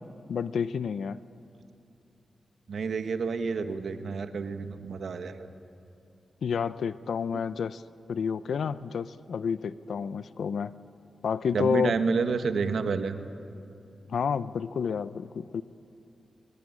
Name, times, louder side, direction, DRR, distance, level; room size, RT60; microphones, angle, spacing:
voice 1, 0.3-1.2 6.4-7.8 8.1-10.7 11.2-11.9 14.1-15.6, left 6 dB, 85° left, 15 dB, 0.6 m, -29 dB
voice 2, 2.7-5.5 11.5-13.2, right 5 dB, 75° right, 8 dB, 1.5 m, -29 dB
23.0 x 20.5 x 9.7 m, 2.7 s
wide cardioid pair, 105°, 0 cm